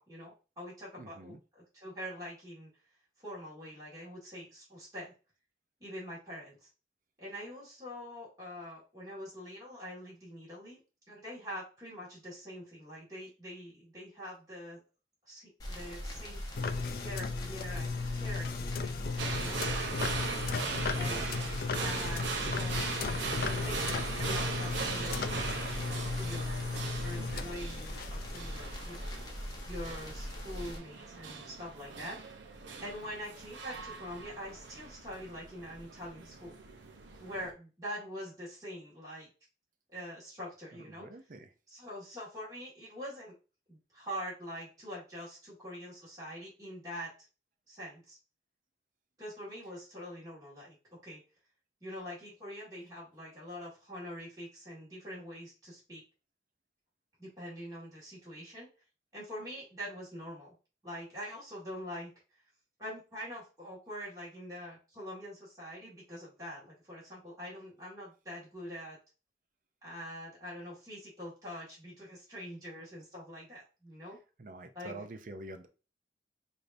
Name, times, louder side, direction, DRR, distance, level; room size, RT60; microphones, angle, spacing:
voice 1, 0.0-2.7 3.2-5.1 5.8-6.7 7.2-10.8 11.1-14.8 15.3-16.5 16.9-19.9 21.0-21.2 21.7-22.8 23.1-25.3 26.1-29.1 29.7-32.2 32.8-36.5 37.2-39.3 39.9-41.1 41.7-43.3 43.7-47.1 47.7-48.2 49.2-50.8 51.0-51.2 51.8-56.0 57.2-58.7 59.1-60.5 60.8-62.1 62.8-69.0 69.8-74.2 74.7-75.0, equal, 20° right, -8 dB, 1.8 m, -44 dB
voice 2, 1.0-1.4 21.0-21.3 40.7-41.5 74.4-75.7, right 2 dB, 45° right, 7 dB, 0.5 m, -46 dB
sound 1, 15.6-30.8, equal, 20° left, 0.8 m, -41 dB
sound 2, 16.6-28.8, left 4 dB, 55° left, 0.3 m, -36 dB
sound 3, 19.2-37.5, right 4 dB, 85° right, 0.7 m, -39 dB
4.9 x 2.7 x 2.6 m, 0.32 s
head